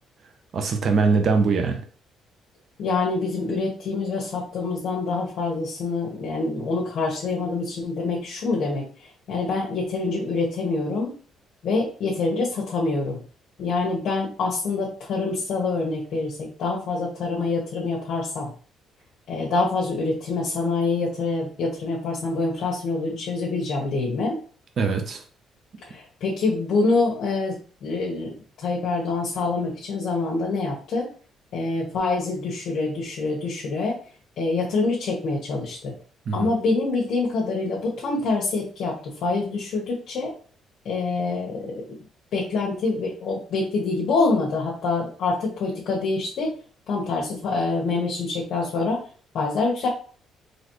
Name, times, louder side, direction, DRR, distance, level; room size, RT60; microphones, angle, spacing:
voice 1, 0.5-1.8 24.8-25.2 36.3-36.5, right 4 dB, 40° right, 5 dB, 0.7 m, -22 dB
voice 2, 2.8-11.1 11.6-13.2 13.6-18.5 19.3-24.4 25.9-31.1 31.5-33.9 34.4-35.9 36.3-40.3 40.8-41.8 42.3-46.5 46.9-49.0 49.3-49.9, left 3 dB, 55° left, -4 dB, 1.2 m, -26 dB
4.1 x 3.1 x 3.1 m, 0.40 s
cardioid pair, 155°, 0 cm